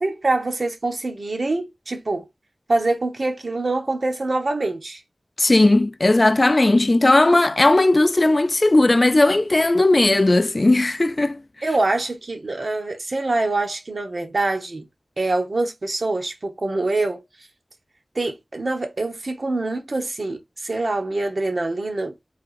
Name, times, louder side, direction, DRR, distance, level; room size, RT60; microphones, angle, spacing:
voice 1, 0.0-2.2 2.7-5.0 11.6-14.9 15.2-17.2 18.1-22.1, right 2 dB, 75° right, 1.1 m, -25 dB
voice 2, 5.4-11.4, left 2 dB, 50° left, 0.3 m, -17 dB
4.5 x 3.5 x 2.5 m
wide cardioid pair, 45°, 0 cm